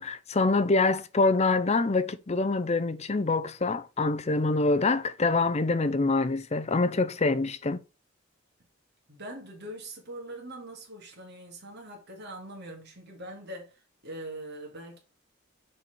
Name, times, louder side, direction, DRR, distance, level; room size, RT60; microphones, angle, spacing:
voice 1, 0.0-7.8, left 3 dB, 35° left, 0.6 m, -25 dB
voice 2, 9.1-15.0, right 1 dB, 55° right, 2.1 m, -42 dB
6.5 x 4.5 x 4.4 m
head